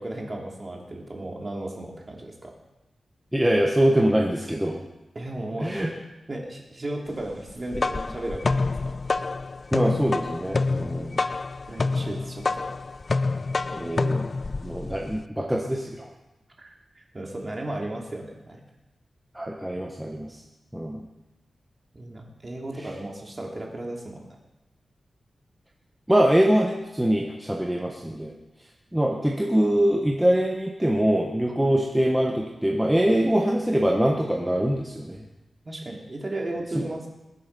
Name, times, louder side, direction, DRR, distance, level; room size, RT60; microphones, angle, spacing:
voice 1, 0.0-2.5 5.1-6.0 6.3-9.0 11.7-12.7 16.6-18.6 21.9-24.2 31.6-31.8 35.6-37.1, right 1 dB, 30° right, -1 dB, 2.9 m, -35 dB
voice 2, 3.3-4.8 5.6-5.9 9.7-11.2 13.7-14.3 14.6-16.1 19.3-20.3 20.7-21.0 26.1-28.3 28.9-35.2 36.7-36.8, right 1 dB, 5° right, 0 dB, 1.3 m, -23 dB
sound 1, 7.5-15.2, left 3 dB, 40° left, 0.4 m, -27 dB
21.5 x 8.3 x 5.5 m, 0.97 s
wide cardioid pair, 125°, 0 cm